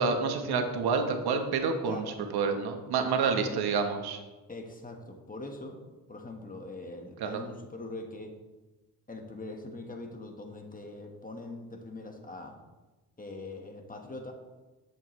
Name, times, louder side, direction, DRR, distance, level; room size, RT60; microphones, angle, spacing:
voice 1, 0.0-2.1 2.3-4.2 7.2-7.4, right 5 dB, 80° right, 5 dB, 1.2 m, -28 dB
voice 2, 1.9-2.2 3.3-3.5 4.5-5.8 6.1-8.3 9.1-12.6 13.2-14.3, left 2 dB, 20° left, 3 dB, 1.4 m, -42 dB
11.0 x 7.8 x 3.2 m, 1.2 s
cardioid pair, 95°, 38 cm